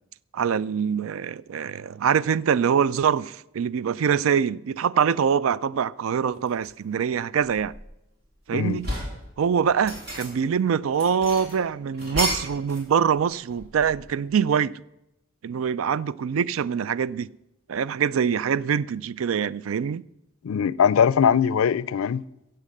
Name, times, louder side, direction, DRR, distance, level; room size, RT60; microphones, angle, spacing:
voice 1, 0.3-7.7 8.5-8.9 9.4-14.7 15.4-17.3 17.7-20.0, right 7 dB, 75° right, 0.4 m, -24 dB
sound 1, 6.5-6.7 7.2-8.2 8.6-9.2 9.7-10.5 10.9-12.9 13.2-14.2, equal, 50° right, 4.0 m, -33 dB
voice 2, 20.4-22.2, left 7 dB, 90° left, 0.4 m, -21 dB
15.5 x 7.7 x 6.6 m
head